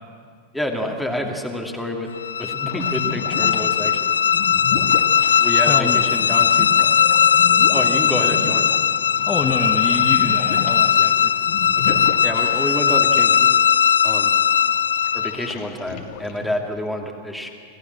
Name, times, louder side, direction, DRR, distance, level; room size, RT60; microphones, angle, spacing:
voice 1, 0.5-2.1 2.4-4.2 5.4-6.9 7.7-8.7 11.8-13.6 14.0-14.3 15.1-17.5, left 1 dB, ahead, 1 dB, 2.5 m, -28 dB
sound 1, 2.2-15.5, left 8 dB, 70° left, 0.5 m, -18 dB
sound 2, 2.7-13.1 13.4-13.5 14.1-14.5 15.0-16.8, left 5 dB, 45° left, 1.8 m, -33 dB
voice 2, 5.7-6.1 9.2-11.3, left 4 dB, 20° left, 1 dB, 1.5 m, -27 dB
26.0 x 15.5 x 7.8 m, 2.1 s
figure-of-eight pair, 90°, 0 cm